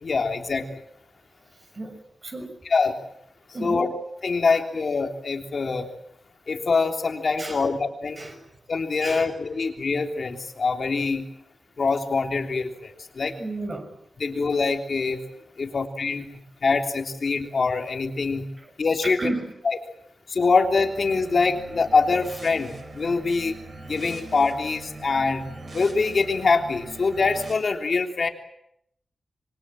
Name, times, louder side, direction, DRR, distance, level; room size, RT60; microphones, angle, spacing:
voice 1, 0.0-0.7 2.7-3.0 3.6-3.9 4.2-5.9 6.5-8.2 8.7-11.2 11.8-12.9 13.2-13.4 14.2-15.2 15.6-16.3 16.6-18.4 18.8-19.3 19.6-19.8 20.3-23.5 23.9-25.5 25.7-28.3, left 4 dB, 50° left, 4 dB, 3.3 m, -24 dB
voice 2, 1.7-2.5 3.5-3.9 4.2-4.6 7.4-7.8 8.1-8.5 9.0-9.7 13.3-13.9 18.6-18.7 19.0-19.6, right 2 dB, 30° right, 6 dB, 6.4 m, -34 dB
sound 1, 20.7-27.5, right 3 dB, 50° right, 6.5 m, -42 dB
27.0 x 24.0 x 7.6 m, 0.76 s
wide cardioid pair, 150°, 0 cm